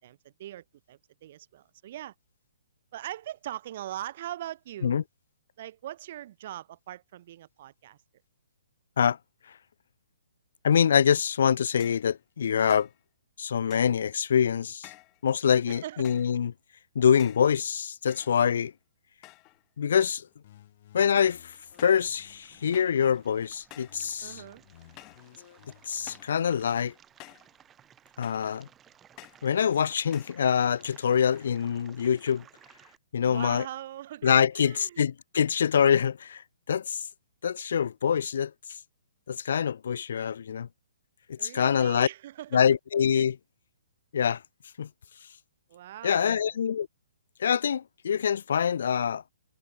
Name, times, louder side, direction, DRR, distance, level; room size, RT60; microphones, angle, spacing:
voice 1, 0.0-2.1 2.9-5.1 5.6-8.0 15.7-16.0 24.2-24.6 33.2-35.1 41.4-42.6 45.7-46.6, right 13 dB, 45° right, 5.3 m, -41 dB
voice 2, 10.6-12.9 13.4-14.9 15.2-16.5 16.9-18.7 19.8-20.3 20.9-21.5 21.8-24.4 25.9-26.9 28.2-28.7 29.4-32.4 33.1-33.6 34.2-37.0 37.4-38.5 39.3-40.7 41.3-42.1 42.5-43.4 44.1-44.4 44.8-44.9 46.0-46.9 47.4-49.2, left 8 dB, 65° left, 0.8 m, -25 dB
sound 1, 11.8-12.1 12.7-13.0 13.7-14.1 14.8-15.2 16.0-16.4 17.2-17.5 18.1-18.7 19.2-19.6 19.9-20.4 21.2-21.5 21.8-22.1 22.7-23.0 23.7-24.0 25.0-25.3 26.1-26.4 27.2-27.5 28.2-28.5 29.2-29.5 30.1-30.4, left 24 dB, 25° left, 3.7 m, -51 dB
sound 2, 20.4-23.4 23.9-26.9, left 12 dB, 45° left, 4.6 m, -56 dB
sound 3, 21.5-33.0, right 9 dB, 15° right, 2.3 m, -58 dB
hypercardioid pair, 155°, 0 cm